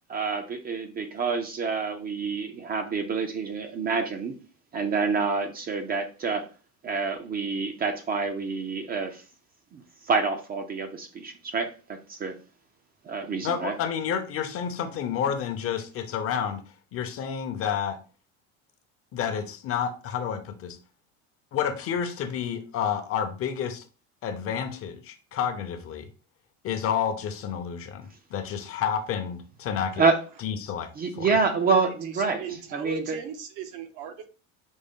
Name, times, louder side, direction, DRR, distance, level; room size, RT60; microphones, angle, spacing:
voice 1, 0.1-4.3 4.7-6.5 6.8-9.2 9.7-12.3 13.1-13.7 30.0-30.2 31.0-32.4 32.7-33.2, right 4 dB, 25° right, 0.5 m, -27 dB
voice 2, 13.4-16.6 16.9-18.0 19.1-20.8 21.5-23.8 24.2-26.1 26.6-30.0 30.4-30.9 31.1-31.3, left 8 dB, 40° left, 0.7 m, -30 dB
voice 3, 31.8-34.2, right 8 dB, 60° right, 0.8 m, -38 dB
5.2 x 2.1 x 3.6 m
cardioid pair, 125°, 34 cm